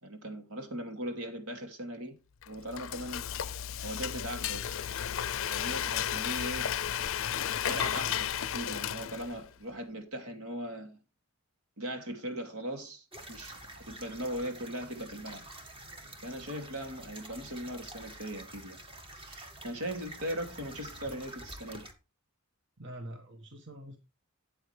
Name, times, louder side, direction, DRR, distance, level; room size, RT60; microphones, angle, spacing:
voice 1, 0.0-2.2 2.5-3.3 3.8-4.6 5.5-6.7 7.6-11.0 11.8-15.4 16.2-18.8 19.1-21.8, right 1 dB, 80° right, 2.5 m, -39 dB
Frying (food), 2.4-9.5, left 9 dB, 60° left, 0.5 m, -33 dB
sound 1, 13.1-21.9, right 1 dB, 25° right, 1.6 m, -48 dB
voice 2, 22.8-24.0, right 1 dB, 55° right, 1.5 m, -45 dB
13.5 x 8.8 x 3.3 m
head